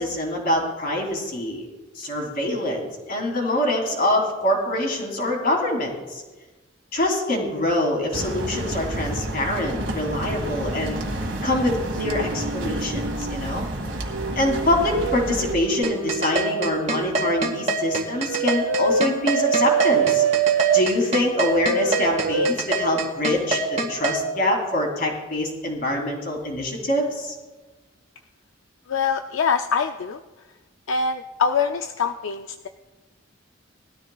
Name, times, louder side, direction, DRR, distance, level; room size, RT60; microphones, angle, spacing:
voice 1, 0.0-1.7 1.9-6.2 6.9-11.0 11.4-13.6 14.3-20.2 20.7-27.3, left 1 dB, 50° left, 0 dB, 3.0 m, -25 dB
sound 1, 8.1-15.5, right 1 dB, 65° right, 1.6 m, -30 dB
sound 2, 12.0-13.4 14.1-17.4 18.3-20.9 21.5-22.6, right 7 dB, 90° right, 0.5 m, -25 dB
sound 3, 15.8-24.2, right 2 dB, 35° right, 1.6 m, -24 dB
voice 2, 28.9-30.2 30.9-32.7, left 6 dB, 75° left, 6 dB, 0.4 m, -24 dB
20.5 x 13.0 x 2.3 m, 1.2 s
head